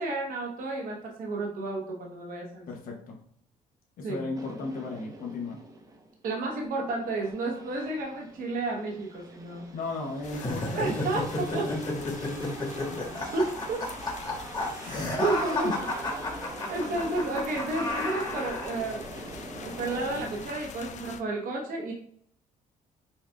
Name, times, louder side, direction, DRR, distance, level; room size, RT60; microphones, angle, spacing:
voice 1, 0.0-2.7 4.0-4.2 6.2-9.6 10.7-11.7 13.3-13.9 14.7-15.9 16.7-19.0 19.6-21.9, right 2 dB, 65° right, -1 dB, 0.8 m, -31 dB
voice 2, 2.7-3.2 4.0-5.6 9.7-13.2 14.8-15.1 15.6-15.7, left 2 dB, 70° left, -1 dB, 0.8 m, -36 dB
sound 1, 4.3-6.2 6.6-20.5, right 2 dB, 25° right, 0.6 m, -44 dB
sound 2, 10.2-21.2, left 6 dB, 50° left, 0.4 m, -45 dB
sound 3, 10.3-18.8, left 2 dB, 30° left, 1.2 m, -32 dB
5.4 x 2.4 x 2.2 m, 0.64 s
cardioid pair, 80°, 15 cm